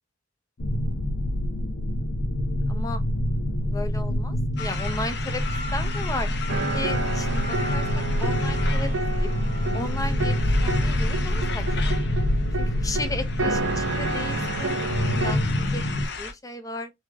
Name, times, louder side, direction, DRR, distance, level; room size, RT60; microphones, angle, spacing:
sound 1, 0.6-16.1, left 1 dB, 80° left, 0.9 m, -26 dB
voice 1, 2.7-3.0 3.6-5.4 5.7-6.3 6.7-8.9 9.2-9.3 9.7-10.3 10.6-11.9 12.6-15.8 16.2-16.9, left 2 dB, 15° left, 0.6 m, -35 dB
sound 2, 4.6-16.3, left 4 dB, 55° left, 0.9 m, -36 dB
sound 3, 6.5-15.3, right 3 dB, 85° right, 0.8 m, -31 dB
4.2 x 3.0 x 3.4 m
head